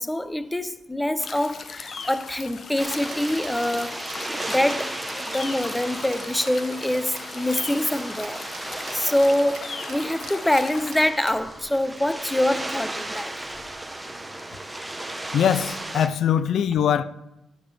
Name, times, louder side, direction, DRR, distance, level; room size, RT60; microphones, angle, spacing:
voice 1, 0.0-3.9 4.5-4.9 5.3-13.3, left 1 dB, 10° left, 0.6 m, -25 dB
sound 1, 1.2-11.1, left 5 dB, 45° left, 0.8 m, -39 dB
sound 2, 2.8-16.1, right 1 dB, 10° right, 1.0 m, -35 dB
sound 3, 3.1-11.5, right 7 dB, 80° right, 1.6 m, -45 dB
voice 2, 15.3-17.0, left 9 dB, 65° left, 0.4 m, -22 dB
11.5 x 8.6 x 3.4 m
cardioid pair, 90°, 0 cm